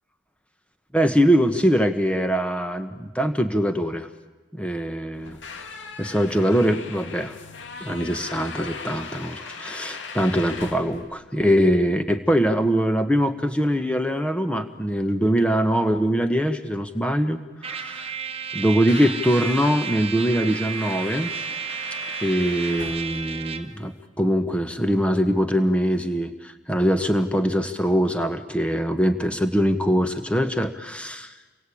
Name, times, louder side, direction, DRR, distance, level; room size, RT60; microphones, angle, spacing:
voice 1, 0.9-4.1 4.5-5.4 6.0-7.3 7.8-17.4 17.6-18.1 18.5-21.3 22.2-31.3, equal, 5° left, 7 dB, 1.5 m, -22 dB
sound 1, 5.1-24.1, left 4 dB, 70° left, 2.3 m, -40 dB
Trumpet, 17.6-23.8, right 7 dB, 30° right, 1.3 m, -32 dB
28.5 x 22.5 x 8.7 m, 1.2 s
head